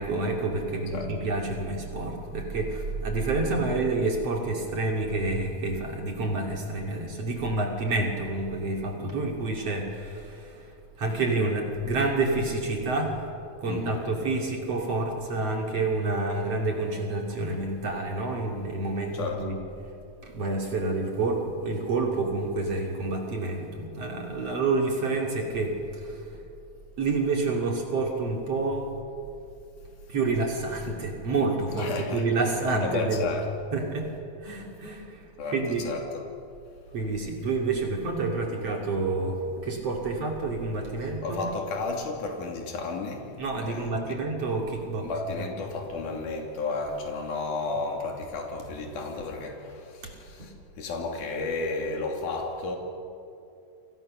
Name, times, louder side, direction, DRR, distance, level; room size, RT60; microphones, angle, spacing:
voice 1, 0.0-10.7 11.0-13.3 13.6-19.7 20.2-26.3 27.0-28.9 30.1-33.3 33.7-34.1 34.4-35.9 36.9-41.5 43.4-45.5 50.0-50.1 50.4-50.5, right 3 dB, 50° right, 1 dB, 3.6 m, -28 dB
voice 2, 13.7-14.0 19.1-19.4 31.7-32.2 32.8-33.5 35.4-35.6 35.9-36.3 41.2-43.3 43.6-44.2 45.0-52.8, left 3 dB, 75° left, 1 dB, 4.3 m, -32 dB
29.0 x 27.0 x 6.6 m, 2.7 s
omnidirectional pair, 3.6 m